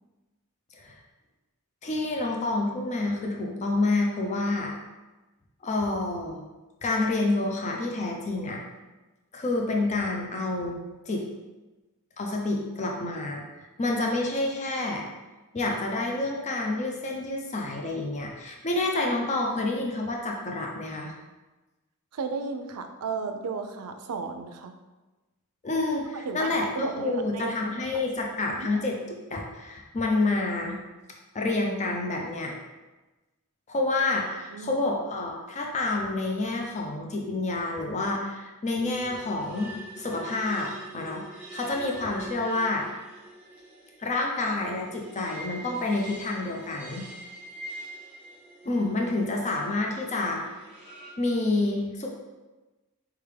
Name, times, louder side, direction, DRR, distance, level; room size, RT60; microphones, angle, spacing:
voice 1, 1.8-4.7 5.6-6.4 6.8-8.6 9.3-10.8 11.1-11.3 12.2-15.0 15.5-21.1 25.6-30.8 31.3-32.5 33.7-41.2 41.5-42.9 44.0-47.1 48.6-50.4 51.2-52.1, left 2 dB, 30° left, 0 dB, 0.5 m, -28 dB
voice 2, 22.1-24.7 26.2-27.5 28.5-28.7 34.5-34.9, right 5 dB, 90° right, 7 dB, 0.5 m, -34 dB
sound 1, 38.7-51.1, right 1 dB, 5° right, 1.2 m, -44 dB
4.5 x 3.5 x 3.3 m, 1.1 s
head